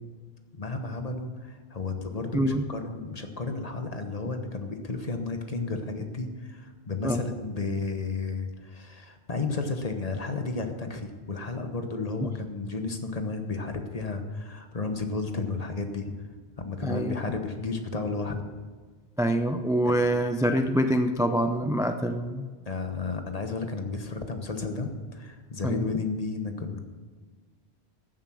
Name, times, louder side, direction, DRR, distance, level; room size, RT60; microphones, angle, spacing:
voice 1, 0.6-16.1 16.6-18.5 22.6-26.8, left 3 dB, 35° left, 6 dB, 1.2 m, -32 dB
voice 2, 2.3-2.6 7.0-7.3 12.2-12.3 16.8-17.2 19.2-22.5 25.6-25.9, right 1 dB, 5° right, 7 dB, 0.3 m, -25 dB
14.0 x 7.9 x 6.3 m, 1.4 s
omnidirectional pair, 1.1 m